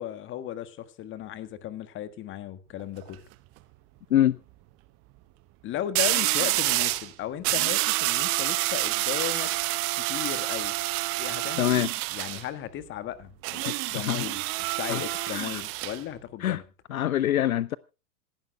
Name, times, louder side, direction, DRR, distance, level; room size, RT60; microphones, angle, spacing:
voice 1, 0.0-3.2 5.6-9.5 10.0-10.8 11.2-11.8 12.1-16.7, left 11 dB, 25° left, 1.6 m, -36 dB
sound 1, 2.8-3.1 5.9-7.1 7.4-12.4 13.4-16.0, right 19 dB, 30° right, 1.0 m, -28 dB
voice 2, 11.6-11.9 13.9-14.3 14.9-15.0 15.3-15.6 16.4-16.6 16.9-17.8, left 12 dB, 70° left, 0.7 m, -24 dB
26.5 x 11.5 x 2.2 m
figure-of-eight pair, 105°, 45 cm